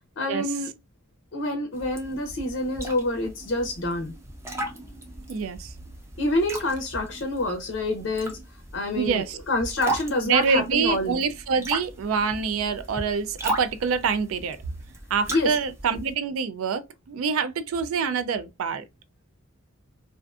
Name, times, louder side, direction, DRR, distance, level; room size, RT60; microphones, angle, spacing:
voice 1, 0.2-0.7 1.3-4.1 6.2-8.4 8.7-11.2 15.3-15.5, left 2 dB, 60° left, 0.5 m, -27 dB
sound 1, 1.7-16.1, right 1 dB, 15° right, 0.4 m, -37 dB
voice 2, 5.3-5.7 8.9-9.4 10.3-14.6 15.1-18.8, right 5 dB, 80° right, 0.3 m, -26 dB
2.4 x 2.4 x 2.2 m
head